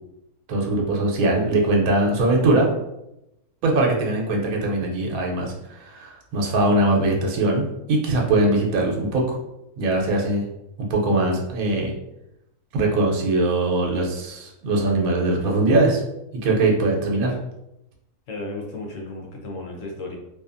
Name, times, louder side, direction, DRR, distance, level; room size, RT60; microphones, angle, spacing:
voice 1, 0.5-2.7 3.6-9.4 9.8-10.4 10.9-11.9 12.7-16.0 16.4-17.3, right 2 dB, 75° right, 0 dB, 1.1 m, -21 dB
voice 2, 18.3-20.2, left 2 dB, 65° left, 0 dB, 0.9 m, -34 dB
2.7 x 2.3 x 2.5 m, 0.88 s
omnidirectional pair, 1.6 m